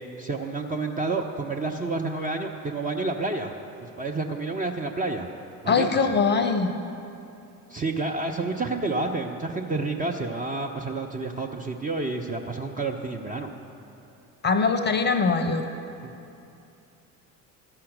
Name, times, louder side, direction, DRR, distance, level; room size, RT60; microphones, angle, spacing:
voice 1, 0.2-3.5 4.0-5.3 5.6-6.0 7.7-13.5, right 3 dB, 20° right, 2 dB, 0.5 m, -29 dB
voice 2, 5.7-6.7 14.4-15.6, left 4 dB, 20° left, 7 dB, 0.7 m, -22 dB
13.0 x 5.7 x 6.5 m, 2.7 s
figure-of-eight pair, 60°, 48 cm